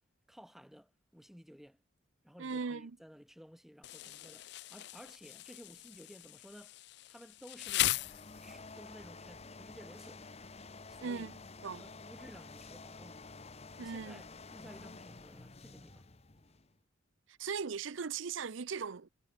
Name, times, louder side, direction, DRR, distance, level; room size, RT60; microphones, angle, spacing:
voice 1, 0.3-1.8 2.2-6.8 7.1-8.0 8.4-10.3 10.9-11.3 11.7-13.2 13.7-16.1, equal, ahead, 6.9 m, -55 dB
voice 2, 2.4-2.9 11.0-11.3 11.6-11.8 13.8-14.2 17.3-19.1, right 5 dB, 65° right, 0.6 m, -38 dB
Insect, 3.8-8.8, left 15 dB, 55° left, 0.4 m, -38 dB
sound 1, 7.6-16.8, left 3 dB, 30° left, 1.1 m, -51 dB
head